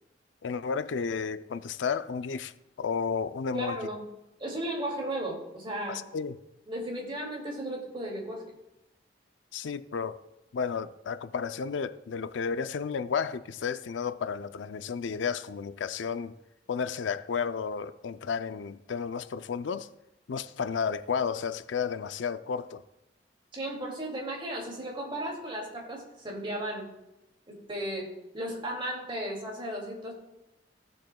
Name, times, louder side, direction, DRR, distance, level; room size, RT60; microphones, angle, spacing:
voice 1, 0.4-3.8 5.9-6.4 9.5-10.2 10.5-16.3 16.7-19.9 20.3-22.8, left 6 dB, 90° left, 0.4 m, -32 dB
voice 2, 3.5-4.1 4.4-6.0 6.7-8.4 23.5-26.9 27.5-30.1, right 1 dB, 30° right, 2.4 m, -35 dB
16.0 x 7.7 x 2.3 m
head